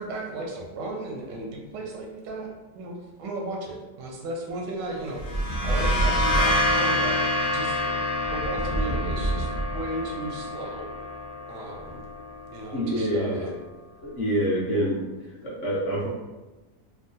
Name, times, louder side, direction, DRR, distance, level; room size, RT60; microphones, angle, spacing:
voice 1, 0.0-8.0 8.3-10.9 11.5-12.0 12.5-13.5, right 2 dB, 85° right, 0 dB, 1.3 m, -35 dB
sound 1, 5.1-12.7, left 1 dB, 75° left, 1.2 m, -28 dB
sound 2, 5.1-6.7 8.2-10.1, right 2 dB, 50° right, 0.5 m, -28 dB
voice 2, 12.7-13.5 14.0-15.0 15.4-16.1, equal, 55° left, -6 dB, 0.9 m, -26 dB
3.6 x 2.0 x 2.6 m, 1.1 s
omnidirectional pair, 1.8 m